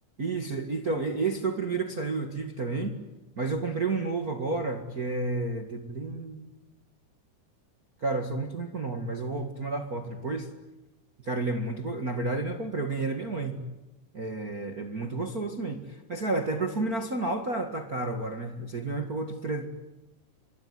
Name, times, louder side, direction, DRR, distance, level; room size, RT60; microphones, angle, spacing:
voice 1, 0.2-3.0 3.4-6.5 8.0-10.5 11.2-13.6 14.1-19.7, right 3 dB, 80° right, 5 dB, 0.8 m, -31 dB
25.5 x 23.0 x 9.5 m, 0.99 s
omnidirectional pair, 5.2 m